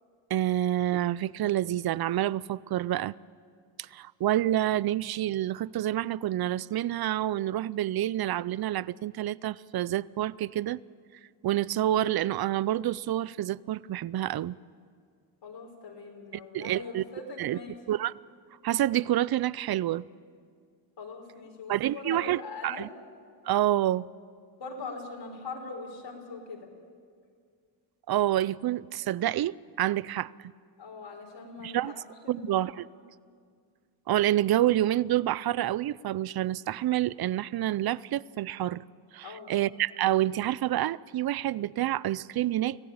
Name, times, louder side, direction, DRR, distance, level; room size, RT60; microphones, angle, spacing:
voice 1, 0.3-3.1 3.8-10.8 11.4-14.6 16.5-17.0 17.4-17.6 17.9-18.1 18.6-20.1 21.7-22.9 23.4-24.1 28.1-30.5 31.6-31.9 32.3-32.7 34.1-38.8 39.1-42.8, right 13 dB, 50° right, 0.6 m, -28 dB
voice 2, 15.4-17.8 21.0-22.8 24.6-26.7 30.8-32.8 39.2-39.5, left 4 dB, 65° left, 5.1 m, -42 dB
24.5 x 16.5 x 8.7 m
cardioid pair, 85°, 47 cm